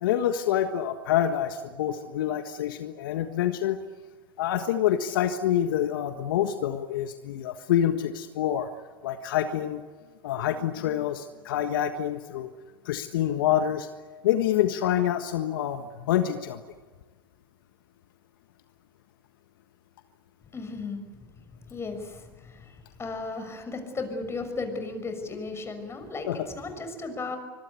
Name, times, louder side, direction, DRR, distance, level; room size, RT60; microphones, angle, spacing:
voice 1, 0.0-3.8 4.4-8.7 9.0-9.8 10.2-12.5 12.8-13.9 14.2-16.6 26.3-26.4, left 11 dB, 70° left, 8 dB, 1.5 m, -26 dB
voice 2, 20.5-21.0 21.7-27.4, left 3 dB, 20° left, 7 dB, 6.2 m, -35 dB
25.0 x 22.5 x 8.5 m, 1.4 s
hypercardioid pair, 85°, 12 cm